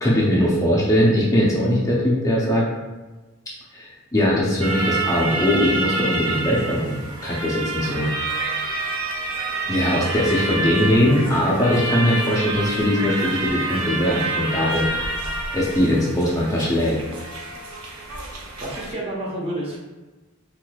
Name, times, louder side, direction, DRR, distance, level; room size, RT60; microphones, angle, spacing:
voice 1, 0.0-2.7 3.7-8.1 9.7-15.1 15.5-17.0, equal, 15° left, -5 dB, 0.5 m, -20 dB
sound 1, 4.6-18.9, right 2 dB, 75° right, 0.6 m, -28 dB
voice 2, 18.6-19.8, right 1 dB, 30° right, -4 dB, 0.7 m, -29 dB
3.5 x 3.1 x 2.3 m, 1.2 s
head